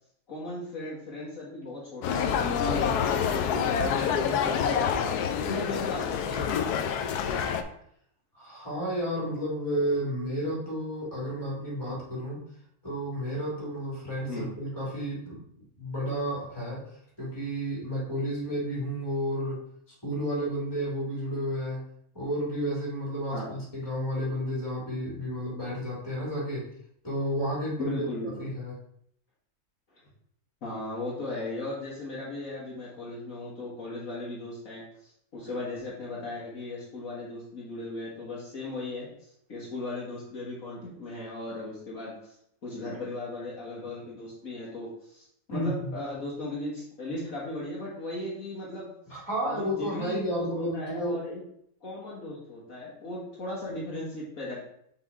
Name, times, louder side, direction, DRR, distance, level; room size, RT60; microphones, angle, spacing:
voice 1, 0.3-6.8 14.3-14.5 23.3-23.5 27.8-28.5 30.6-42.4 42.6-48.9 49.5-51.4 51.8-54.6, left 2 dB, 60° left, -5 dB, 1.9 m, -37 dB
sound 1, 2.0-7.6, left 7 dB, 85° left, 1.1 m, -27 dB
voice 2, 8.3-12.4 12.8-15.4 15.8-16.8 17.2-19.6 20.0-21.8 22.1-26.7 27.0-28.0 28.4-28.7 45.5-45.9 49.1-51.2, equal, 15° left, -6 dB, 2.6 m, -31 dB
5.9 x 3.8 x 4.7 m, 0.69 s
omnidirectional pair, 1.6 m